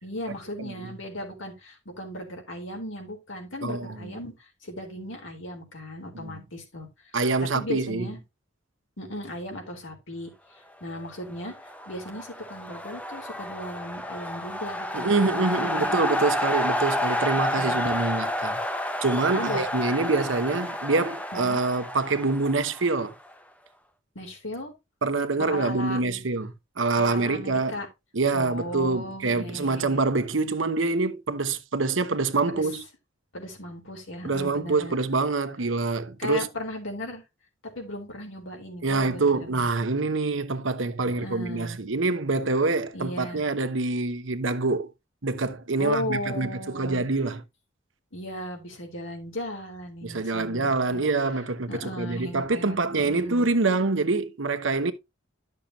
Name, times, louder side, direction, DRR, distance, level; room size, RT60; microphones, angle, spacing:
voice 1, 0.0-4.3 4.6-6.9 7.5-8.2 9.0-10.3 10.8-11.5 11.9-16.0 17.3-17.9 19.3-19.6 21.3-21.6 24.2-24.7 25.4-26.0 27.0-27.9 28.3-30.0 32.5-32.6 33.3-35.0 36.2-37.2 37.7-39.7 41.0-41.8 42.9-43.4 45.8-47.0 48.1-51.0 51.7-53.5, left 1 dB, 80° left, 3.7 m, -36 dB
voice 2, 3.6-4.1 6.1-6.3 7.1-8.1 14.9-18.6 19.0-23.1 25.0-27.8 28.1-32.8 34.2-36.5 38.8-44.9 45.2-47.4 50.0-54.9, right 3 dB, 75° right, 1.0 m, -26 dB
sound 1, 11.4-23.3, left 1 dB, 5° left, 0.8 m, -30 dB
12.0 x 6.6 x 2.8 m
head